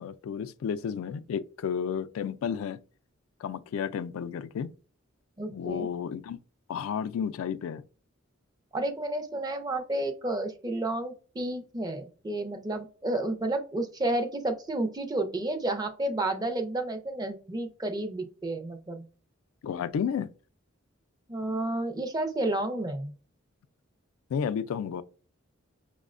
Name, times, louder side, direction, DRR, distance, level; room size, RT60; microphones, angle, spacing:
voice 1, 0.0-2.8 3.4-4.7 5.5-6.4 6.7-7.8 19.6-20.3 24.3-25.0, left 7 dB, 85° left, 0.3 m, -32 dB
voice 2, 5.4-5.9 8.7-19.1 21.3-23.1, right 2 dB, 20° right, 0.4 m, -31 dB
5.3 x 2.1 x 2.4 m
head